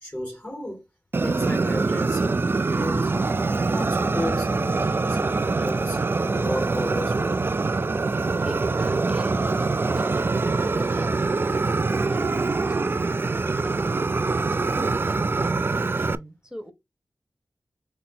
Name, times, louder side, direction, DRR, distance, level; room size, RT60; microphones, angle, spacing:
voice 1, 0.0-0.9 1.2-3.3 3.7-6.0 6.3-7.4, left 1 dB, 25° left, 2.3 m, -33 dB
Fire, 1.1-16.2, right 3 dB, 35° right, 0.3 m, -24 dB
voice 2, 8.1-14.1 14.4-16.7, right 1 dB, 10° right, 1.2 m, -42 dB
5.4 x 2.0 x 4.1 m
cardioid pair, 45°, 6 cm